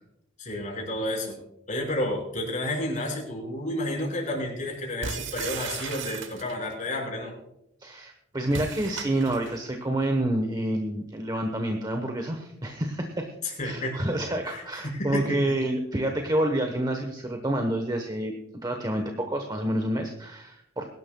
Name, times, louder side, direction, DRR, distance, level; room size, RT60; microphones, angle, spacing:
voice 1, 0.4-1.4 1.7-7.3 13.4-13.9 14.5-15.4, left 1 dB, 40° left, -1 dB, 5.3 m, -31 dB
sound 1, 5.0-6.7 8.5-9.6, right 5 dB, 70° right, 1.1 m, -36 dB
voice 2, 7.8-13.3 13.6-18.3 18.6-20.9, right 1 dB, 20° right, 4 dB, 1.1 m, -28 dB
22.5 x 12.0 x 2.3 m, 0.83 s
head